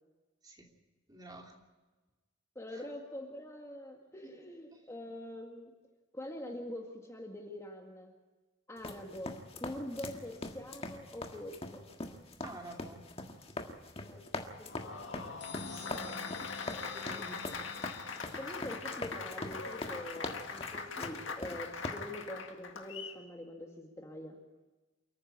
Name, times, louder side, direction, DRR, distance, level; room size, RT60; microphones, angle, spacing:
voice 1, 1.1-1.5 2.7-2.8 4.2-4.8 12.4-13.0 15.6-16.4 16.9-17.6, right 2 dB, 20° right, 1 dB, 2.9 m, -50 dB
voice 2, 2.6-5.7 6.1-8.1 8.7-9.3 9.6-11.9 14.0-14.2 14.6-15.2 17.1-17.2 18.3-24.3, left 1 dB, 15° left, 1 dB, 1.9 m, -44 dB
sound 1, 8.8-21.9, left 2 dB, 30° left, 1.6 m, -42 dB
Applause, 14.5-23.2, left 5 dB, 90° left, 1.9 m, -42 dB
sound 2, 15.4-19.0, left 6 dB, 65° left, 1.1 m, -48 dB
28.5 x 9.8 x 9.8 m, 1.2 s
head